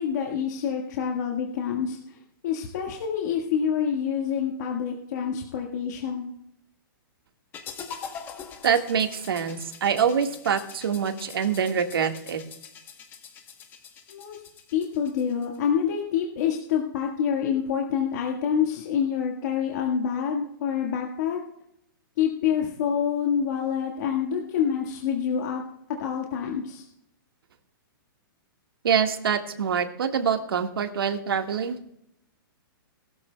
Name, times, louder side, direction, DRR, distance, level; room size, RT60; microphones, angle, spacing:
voice 1, 0.0-6.3 14.1-14.4 14.7-21.4 22.2-25.6 26.0-26.8, left 8 dB, 50° left, 0 dB, 1.7 m, -27 dB
sound 1, 7.5-15.6, left 7 dB, 15° left, 1.1 m, -43 dB
voice 2, 8.6-12.4 28.8-31.7, right 7 dB, 90° right, 6 dB, 1.7 m, -25 dB
20.0 x 13.5 x 2.3 m, 0.77 s
hypercardioid pair, 160°, 12 cm